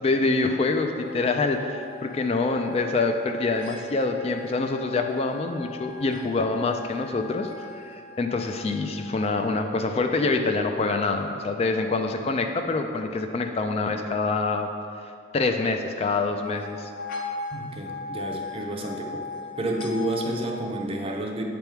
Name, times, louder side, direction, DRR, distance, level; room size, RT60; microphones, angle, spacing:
voice 1, 0.0-7.5 7.8-7.9 8.2-14.7 15.3-16.9, left 3 dB, 35° left, 5 dB, 0.3 m, -25 dB
sound 1, 1.0-10.8 16.2-20.6, left 3 dB, 50° left, 0.8 m, -40 dB
voice 2, 17.5-19.3 19.6-21.4, right 1 dB, 30° right, 2 dB, 0.5 m, -30 dB
8.0 x 3.5 x 4.5 m, 2.4 s
head